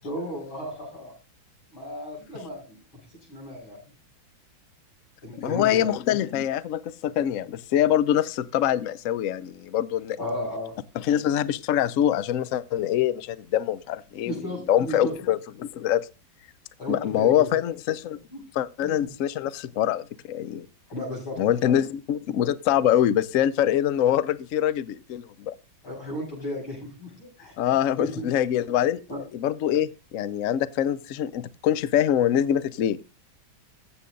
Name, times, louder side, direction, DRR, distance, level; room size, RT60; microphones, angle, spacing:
voice 1, 0.0-1.1 1.7-2.8 3.3-3.8 5.2-5.9 10.2-10.7 14.2-15.1 16.8-17.5 18.3-18.4 18.8-19.1 20.9-21.8 25.8-27.6 28.0-28.3 29.1-29.2, left 1 dB, 90° left, -2 dB, 8.0 m, -34 dB
voice 2, 5.4-10.2 10.9-14.3 14.7-16.1 16.9-18.2 18.6-20.7 21.4-25.5 27.6-29.0 29.3-33.0, left 10 dB, 70° left, 17 dB, 0.7 m, -24 dB
14.5 x 8.1 x 3.8 m, 0.31 s
omnidirectional pair, 2.2 m